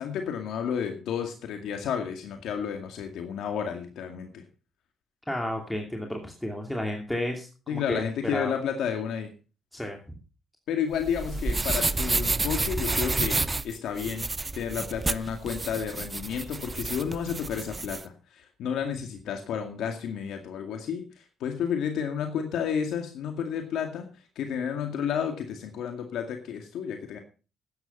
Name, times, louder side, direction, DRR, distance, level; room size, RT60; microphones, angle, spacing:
voice 1, 0.0-4.4 7.7-9.3 10.7-13.4 13.6-14.3 14.5-24.1 24.4-27.2, left 7 dB, 80° left, 5 dB, 2.1 m, -31 dB
voice 2, 5.3-8.0 8.3-8.5 9.7-10.2, left 1 dB, 5° left, 1 dB, 2.8 m, -32 dB
sound 1, 10.9-18.0, right 3 dB, 25° right, 0.8 m, -30 dB
13.0 x 9.8 x 5.5 m, 0.35 s
cardioid pair, 90°, 0 cm